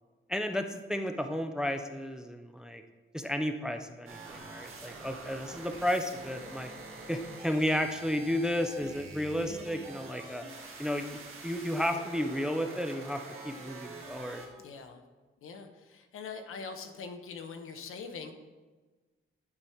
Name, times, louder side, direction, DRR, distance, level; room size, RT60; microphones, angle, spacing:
voice 1, 0.3-2.8 3.1-6.7 7.1-10.4 10.8-11.0 11.4-14.4, equal, 5° right, 6 dB, 0.4 m, -32 dB
sound 1, 4.1-14.5, right 3 dB, 85° right, 1.6 m, -46 dB
voice 2, 14.6-15.0 15.4-18.3, left 5 dB, 80° left, 6 dB, 0.9 m, -43 dB
9.7 x 4.9 x 4.4 m, 1.3 s
wide cardioid pair, 145°, 21 cm